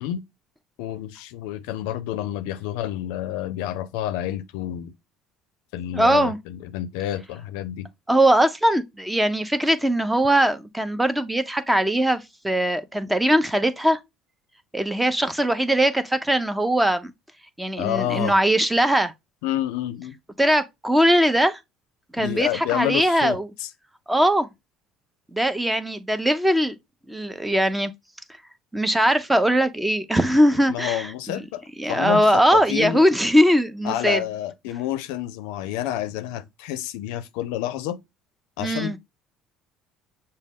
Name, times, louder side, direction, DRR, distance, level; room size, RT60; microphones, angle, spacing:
voice 1, 0.8-4.9 5.7-7.9 17.8-18.3 19.4-20.2 22.2-23.7 30.7-31.6 31.9-33.0 33.8-38.0 38.6-39.0, left 12 dB, 85° left, 0.4 m, -29 dB
voice 2, 5.9-6.4 8.1-14.0 14.7-17.1 17.6-19.1 20.4-21.6 22.1-23.5 24.1-24.5 25.3-26.8 27.1-27.9 28.7-31.4 31.8-34.2 38.6-39.0, right 1 dB, 5° right, 0.5 m, -20 dB
6.3 x 2.2 x 3.4 m
cardioid pair, 115°, 0 cm